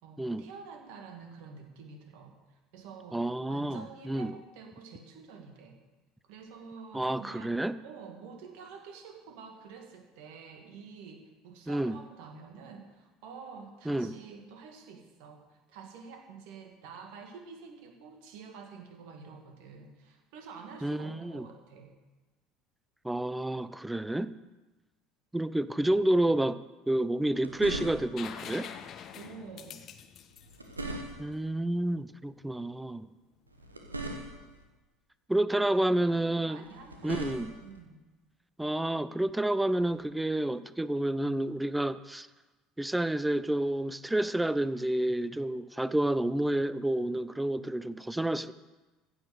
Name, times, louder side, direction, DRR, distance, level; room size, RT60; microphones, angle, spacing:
voice 1, 0.0-5.8 6.3-7.6 7.8-21.9 29.1-29.9 35.5-38.0, right 5 dB, 60° right, 3 dB, 2.2 m, -48 dB
voice 2, 3.1-4.3 6.9-7.8 11.7-12.0 13.9-14.1 20.8-21.5 23.0-24.3 25.3-26.6 26.9-28.7 31.2-33.1 35.3-36.6 37.0-37.5 38.6-42.3 42.8-48.5, right 1 dB, 5° right, 15 dB, 0.6 m, -29 dB
sound 1, 27.1-28.3 30.3-31.5 33.5-34.6 36.6-37.8 39.8-39.9, right 1 dB, 85° right, 1.3 m, -40 dB
sound 2, 28.2-31.9 33.7-33.8, left 8 dB, 40° left, 1.0 m, -45 dB
15.5 x 7.5 x 6.7 m, 1.2 s
figure-of-eight pair, 65°, 0 cm